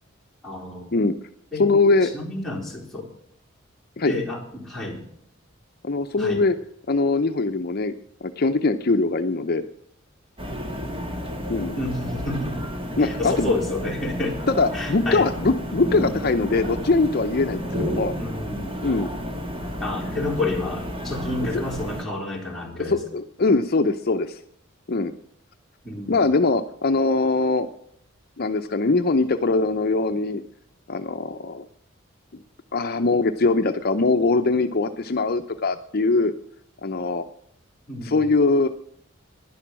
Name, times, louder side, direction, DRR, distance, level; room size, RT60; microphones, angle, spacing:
voice 1, 0.4-1.0 1.5-1.7 2.0-3.1 4.1-5.0 6.2-6.4 11.8-12.7 13.0-14.4 14.7-15.3 18.2-18.8 19.8-23.0 25.8-26.3 37.9-38.2, left 2 dB, ahead, -4 dB, 3.9 m, -29 dB
voice 2, 1.6-2.1 4.0-4.1 5.8-6.6 6.9-7.9 8.2-9.6 11.5-11.8 13.0-13.5 14.5-18.1 18.8-19.1 22.9-24.4 24.9-25.1 26.1-27.7 28.4-30.4 30.9-31.7 32.7-36.3 36.8-37.2 38.0-38.7, left 3 dB, 50° left, 8 dB, 0.7 m, -22 dB
sound 1, 10.4-22.0, equal, 25° right, 1.9 m, -31 dB
11.5 x 11.0 x 7.4 m, 0.69 s
head